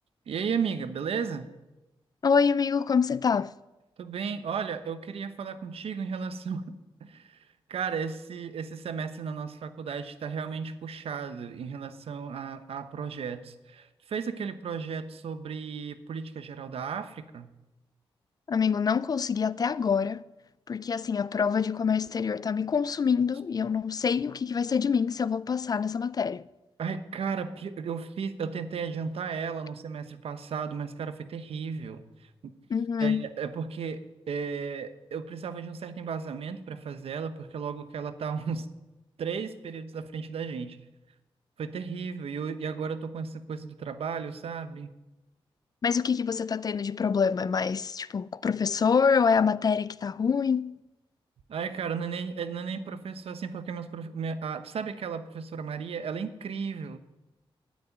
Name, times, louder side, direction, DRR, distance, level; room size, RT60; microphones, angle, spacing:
voice 1, 0.3-1.5 4.0-17.5 26.8-32.5 33.0-38.7 39.2-40.8 41.6-44.9 51.5-57.0, right 6 dB, 80° right, 1.0 m, -34 dB
voice 2, 2.2-3.5 18.5-20.2 20.7-26.4 32.7-33.3 45.8-50.8, left 6 dB, 40° left, 0.3 m, -26 dB
9.6 x 8.5 x 9.3 m
wide cardioid pair, 100°, 10 cm